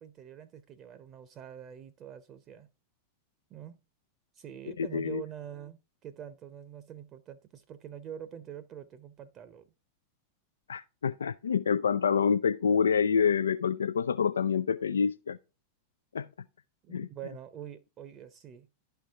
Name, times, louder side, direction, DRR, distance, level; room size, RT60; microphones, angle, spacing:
voice 1, 0.0-2.7 3.5-3.8 4.3-9.7 16.8-18.7, right 9 dB, 30° right, 0.8 m, -45 dB
voice 2, 4.8-5.2 10.7-15.4 16.1-16.3 16.9-17.1, left 6 dB, 70° left, 0.3 m, -27 dB
11.5 x 4.6 x 3.6 m
figure-of-eight pair, 90°, 0 cm